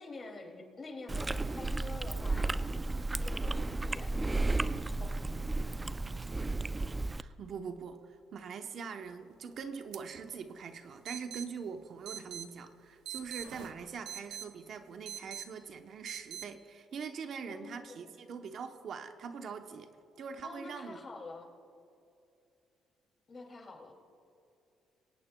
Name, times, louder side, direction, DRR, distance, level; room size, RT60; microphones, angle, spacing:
voice 1, 0.0-2.6 3.2-5.9 17.4-18.2 20.4-21.5 23.3-23.9, left 3 dB, 35° left, 2 dB, 2.5 m, -48 dB
Chewing mastication, 1.1-7.2, right 2 dB, 20° right, 0.4 m, -33 dB
voice 2, 7.2-19.9 20.2-21.0, right 6 dB, 60° right, 7 dB, 0.8 m, -43 dB
sound 1, 9.9-10.0 10.3-10.4 11.1-11.5 12.1-12.5 13.1-14.5 15.1-15.5 16.1-16.5, right 10 dB, 85° right, 0.7 m, -42 dB
22.5 x 18.0 x 2.2 m, 2.7 s
cardioid pair, 105°, 0 cm